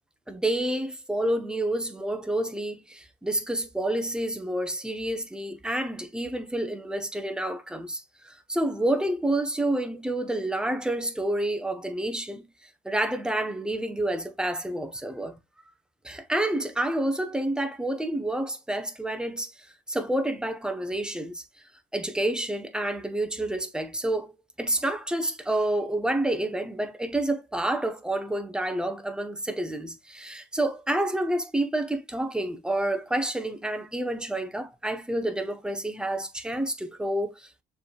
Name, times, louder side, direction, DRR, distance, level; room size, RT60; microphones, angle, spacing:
voice 1, 0.3-12.5 12.8-15.4 16.0-19.5 19.9-21.4 21.9-24.3 24.6-37.6, right 1 dB, 5° right, 0.9 m, -29 dB
6.6 x 3.4 x 2.3 m
cardioid pair, 110°, 17 cm